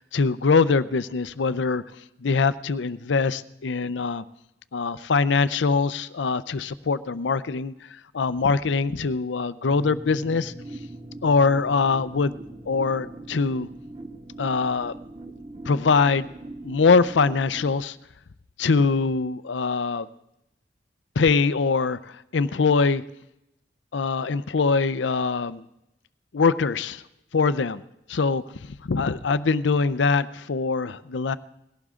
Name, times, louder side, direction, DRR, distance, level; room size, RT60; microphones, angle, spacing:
voice 1, 0.0-1.8 2.2-4.2 4.7-7.7 8.1-10.5 11.2-12.4 12.7-13.7 14.4-14.9 15.7-16.3 16.6-17.9 18.6-20.1 21.2-22.0 22.3-23.0 23.9-25.6 26.3-27.0 27.3-27.8 28.1-28.4 28.9-31.4, left 4 dB, 85° left, 15 dB, 0.6 m, -23 dB
sound 1, 9.7-17.7, right 2 dB, 25° right, 1.2 m, -41 dB
19.5 x 16.5 x 3.7 m, 0.85 s
head